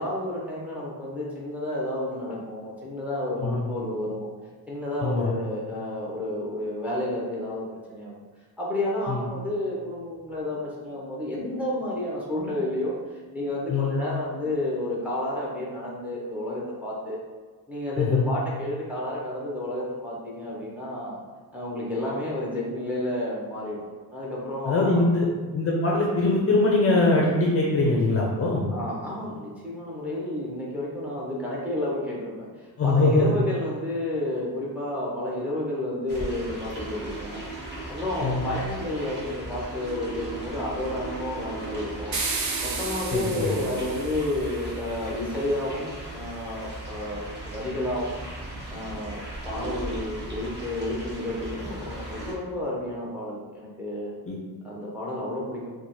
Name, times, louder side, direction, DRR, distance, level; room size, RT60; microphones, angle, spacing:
voice 1, 0.0-4.3 4.7-7.6 7.9-8.1 8.6-17.2 17.7-21.2 21.5-23.9 24.1-25.1 28.7-37.4 37.9-42.2 42.6-48.2 48.7-54.1 54.6-55.7, left 1 dB, 5° right, -5 dB, 0.7 m, -31 dB
voice 2, 18.0-18.3 24.7-25.3 25.5-28.7 32.8-33.4 38.2-38.5 43.1-43.5 54.3-54.4, left 2 dB, 35° left, -3 dB, 0.5 m, -22 dB
sound 1, 36.1-52.3, right 2 dB, 25° right, 1.1 m, -37 dB
sound 2, 42.1-44.5, right 4 dB, 45° right, 0.6 m, -32 dB
3.0 x 2.2 x 4.1 m, 1.4 s
cardioid pair, 130°, 39 cm